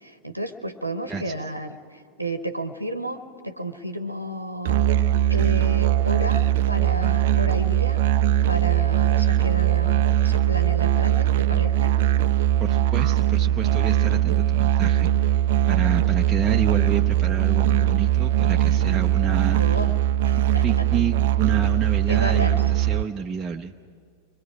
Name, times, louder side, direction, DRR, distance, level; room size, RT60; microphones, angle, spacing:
voice 1, 0.0-1.8 2.2-4.8 5.3-8.0 8.5-11.9 19.6-19.9 20.2-20.9 22.1-22.6, right 1 dB, 85° right, 7 dB, 0.9 m, -31 dB
voice 2, 1.1-1.5 12.6-15.4 15.7-19.9 20.4-23.7, right 6 dB, 20° right, 1 dB, 0.7 m, -30 dB
Musical instrument, 4.6-23.0, right 12 dB, 55° right, 0.5 m, -20 dB
29.5 x 23.0 x 4.9 m, 2.2 s
figure-of-eight pair, 90°, 0 cm